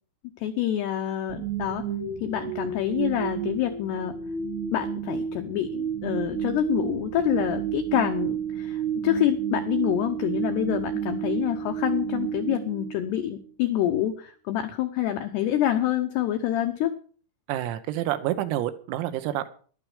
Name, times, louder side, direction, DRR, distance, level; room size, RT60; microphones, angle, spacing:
voice 1, 0.4-1.8 2.2-4.2 4.7-17.0, left 11 dB, 85° left, 7 dB, 2.3 m, -27 dB
sound 1, 1.3-13.5, right 8 dB, 75° right, 3.8 m, -31 dB
voice 2, 17.5-19.5, right 13 dB, 90° right, 9 dB, 3.8 m, -28 dB
14.5 x 11.5 x 4.9 m, 0.43 s
omnidirectional pair, 6.0 m